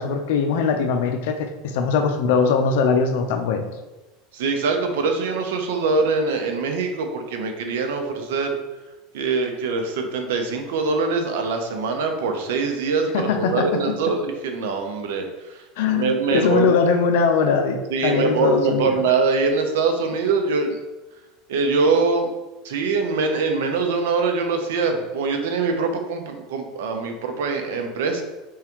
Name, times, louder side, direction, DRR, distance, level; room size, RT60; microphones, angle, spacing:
voice 1, 0.0-3.7 13.1-14.0 15.8-19.0, left 5 dB, 75° left, 5 dB, 0.6 m, -21 dB
voice 2, 4.3-8.6 9.1-16.7 17.9-20.8 21.5-22.3 22.6-28.2, right 4 dB, 85° right, 4 dB, 0.8 m, -23 dB
4.8 x 3.7 x 3.0 m, 1.1 s
supercardioid pair, 130°, 0 cm